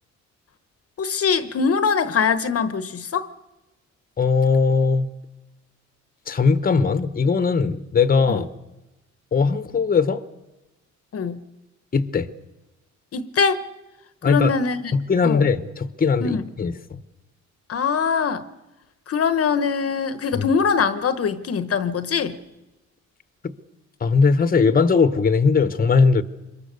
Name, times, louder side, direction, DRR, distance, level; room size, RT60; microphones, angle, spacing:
voice 1, 1.0-3.3 8.3-8.4 11.1-11.4 13.1-13.6 14.2-14.9 15.2-15.5 16.2-16.4 17.7-18.4 19.1-22.4, left 6 dB, 50° left, 1.1 m, -22 dB
voice 2, 4.2-5.1 6.3-8.5 9.3-10.2 11.9-12.3 14.2-14.5 14.9-16.8 20.4-20.5 23.4-23.5 24.0-26.2, left 5 dB, 30° left, 1.1 m, -19 dB
25.0 x 22.0 x 6.8 m
cardioid pair, 90°, 30 cm